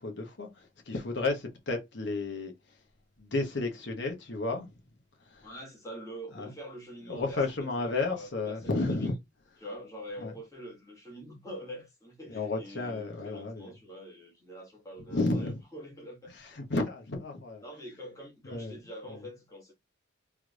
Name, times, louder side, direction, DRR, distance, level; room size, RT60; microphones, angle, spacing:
voice 1, 0.0-2.5 3.2-4.7 5.3-5.5 6.3-6.5 7.1-9.1 10.2-10.3 12.3-13.7 15.1-15.6 16.4-17.6 18.5-18.8 19.1-19.2, left 3 dB, 60° left, 1.0 m, -32 dB
voice 2, 5.4-9.2 9.6-16.4 17.6-19.7, equal, 15° left, 1.5 m, -45 dB
3.5 x 3.2 x 2.3 m
head